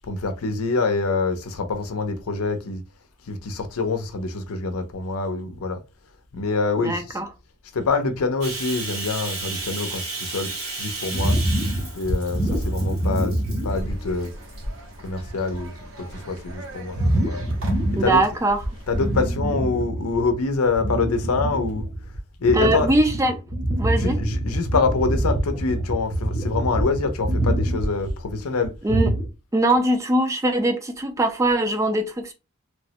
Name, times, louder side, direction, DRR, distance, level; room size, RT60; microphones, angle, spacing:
voice 1, 0.1-2.8 3.3-5.8 6.3-7.2 7.7-10.5 10.8-11.4 11.9-13.4 13.6-14.3 15.0-15.7 16.0-17.0 17.3-17.4 17.9-18.2 18.9-21.9 22.4-22.9 23.9-28.7, left 4 dB, 85° left, 0.6 m, -25 dB
voice 2, 6.8-7.3 18.0-18.6 22.5-23.4 23.8-24.2 28.8-29.2 29.5-32.3, right 1 dB, 15° right, 0.3 m, -21 dB
Bathtub (filling or washing), 8.4-13.8 14.2-14.6 15.2-16.0, right 3 dB, 90° right, 1.8 m, -34 dB
sound 1, 11.1-14.2 14.7-14.8 15.2-15.5 16.9-18.3 18.6-20.3 20.6-29.3, right 1 dB, 35° right, 0.9 m, -25 dB
sound 2, 13.7-19.3, equal, 70° right, 0.9 m, -38 dB
3.1 x 2.1 x 2.8 m
head